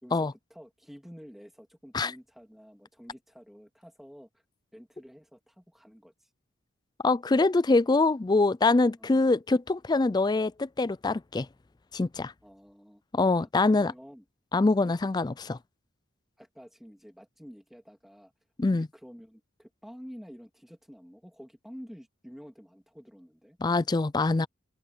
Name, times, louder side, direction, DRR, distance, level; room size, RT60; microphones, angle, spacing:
voice 1, 0.0-4.4 4.7-6.3 9.0-9.3 12.4-13.0 13.4-14.2 16.4-18.3 18.7-23.6, equal, ahead, 2.6 m, -49 dB
voice 2, 7.0-11.5 11.9-12.3 13.1-13.9 14.5-15.6 18.6-18.9 23.6-24.5, left 3 dB, 20° left, 0.3 m, -24 dB
open air
head